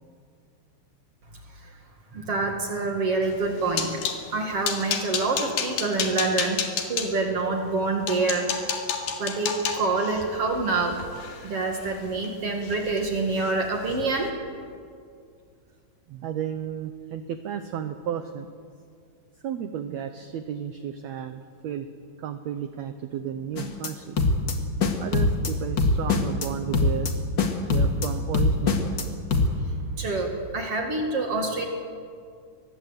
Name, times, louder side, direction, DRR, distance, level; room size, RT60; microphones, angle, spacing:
voice 1, 2.1-4.0 4.3-6.6 6.9-8.5 9.2-11.0 11.4-14.3 30.0-31.7, right 3 dB, 45° right, 3 dB, 2.6 m, -26 dB
sound 1, 3.3-4.2 4.6-7.1 7.7-7.8 8.1-12.3 12.6-13.0 13.3-13.5 13.9-14.1, left 7 dB, 80° left, 3.8 m, -31 dB
voice 2, 16.1-18.5 19.4-21.9 22.2-24.2 25.0-27.1 27.7-28.9, right 9 dB, 80° right, 9 dB, 1.6 m, -33 dB
sound 2, 23.6-23.9 24.2-24.5 24.8-25.5 25.8-26.5 26.7-27.1 27.4-28.1 28.3-29.0 29.3-29.5, left 3 dB, 40° left, 1.9 m, -22 dB
24.0 x 20.0 x 8.1 m, 2.2 s
omnidirectional pair, 4.2 m